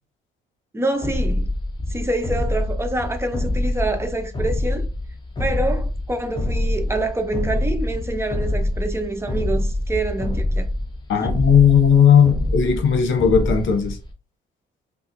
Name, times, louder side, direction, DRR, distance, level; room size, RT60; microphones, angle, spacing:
voice 1, 0.7-1.5 1.9-4.9 5.4-10.7 11.2-11.4, right 2 dB, 15° right, 0.8 m, -26 dB
sound 1, 1.0-14.1, left 1 dB, 20° left, 0.9 m, -25 dB
voice 2, 11.1-14.0, left 7 dB, 75° left, 0.8 m, -16 dB
5.5 x 2.0 x 2.6 m
cardioid pair, 90°, 20 cm